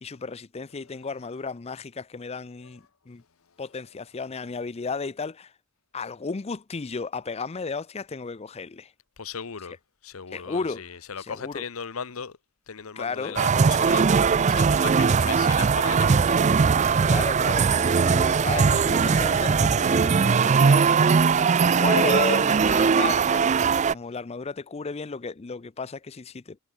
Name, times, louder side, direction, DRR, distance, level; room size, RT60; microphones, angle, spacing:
voice 1, 0.0-3.2 3.6-5.5 5.9-8.9 10.3-10.9 11.2-11.6 13.0-13.4 17.0-21.0 21.6-23.6 23.9-26.6, left 4 dB, 30° left, 0.5 m, -34 dB
voice 2, 9.2-9.8 10.0-12.4 12.7-16.6, left 6 dB, 80° left, 0.9 m, -37 dB
sound 1, 13.4-23.9, right 5 dB, 35° right, 0.4 m, -20 dB
head